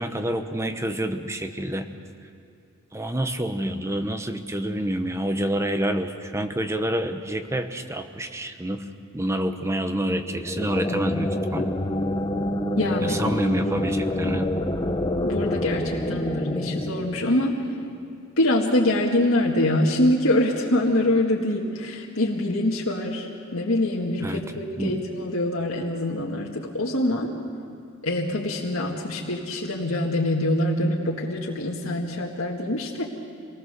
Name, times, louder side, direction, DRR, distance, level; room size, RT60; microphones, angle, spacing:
voice 1, 0.0-1.9 2.9-8.8 9.1-11.7 13.0-14.5 24.2-24.4 24.8-25.0, right 1 dB, 15° right, 7 dB, 1.0 m, -27 dB
sound 1, 10.3-17.9, left 1 dB, 20° left, 1.0 m, -27 dB
voice 2, 12.8-13.3 13.6-13.7 15.2-17.6 18.4-27.4 28.0-33.0, left 1 dB, 70° left, -2 dB, 1.8 m, -24 dB
26.0 x 19.5 x 6.8 m, 2.6 s
head